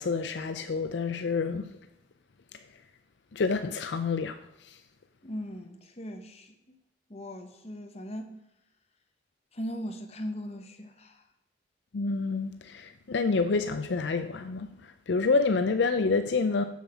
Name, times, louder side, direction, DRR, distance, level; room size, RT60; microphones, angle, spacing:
voice 1, 0.0-1.7 3.3-4.4 4.6-4.8 11.9-16.6, left 4 dB, 70° left, 0.5 m, -28 dB
voice 2, 5.2-6.8 7.1-8.3 9.5-11.3, equal, 35° left, 1.1 m, -39 dB
7.2 x 7.2 x 5.7 m
head